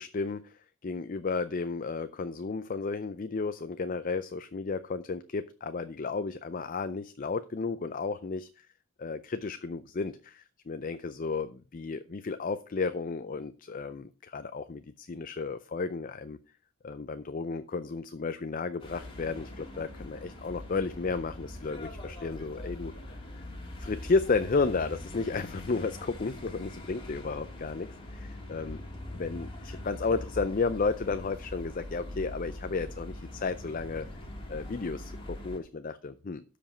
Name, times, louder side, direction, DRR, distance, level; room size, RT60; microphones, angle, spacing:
voice 1, 0.0-8.7 9.0-16.4 16.8-23.2 23.8-28.8 29.1-34.1 34.5-36.4, left 4 dB, 40° left, 11 dB, 0.5 m, -33 dB
sound 1, 18.8-35.6, left 1 dB, 25° left, 2.2 m, -42 dB
13.0 x 5.2 x 5.1 m, 0.34 s
head